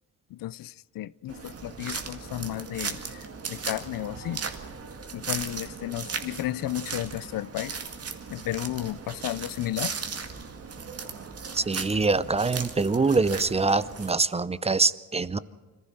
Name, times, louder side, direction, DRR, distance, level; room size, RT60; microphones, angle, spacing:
voice 1, 0.3-4.4 5.1-7.8 8.3-9.9, left 14 dB, 90° left, 0.6 m, -33 dB
sound 1, 1.3-14.1, right 5 dB, 45° right, 2.1 m, -37 dB
voice 2, 11.5-15.4, right 3 dB, 20° right, 0.6 m, -24 dB
26.0 x 15.0 x 6.6 m
wide cardioid pair, 135°, 33 cm